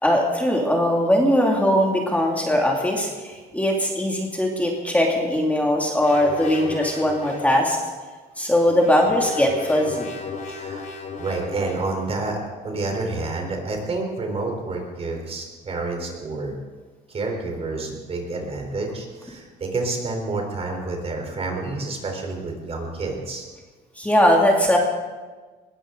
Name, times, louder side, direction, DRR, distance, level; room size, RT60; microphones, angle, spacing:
voice 1, 0.0-7.8 8.4-10.1 24.0-24.8, left 1 dB, 10° left, -1 dB, 2.5 m, -20 dB
sound 1, 6.0-7.6 8.4-12.0, left 4 dB, 50° left, 3.8 m, -35 dB
voice 2, 10.5-10.9 11.2-16.6 17.1-23.4, right 3 dB, 35° right, 2 dB, 4.0 m, -29 dB
20.5 x 16.0 x 3.9 m, 1.4 s
cardioid pair, 110°, 17 cm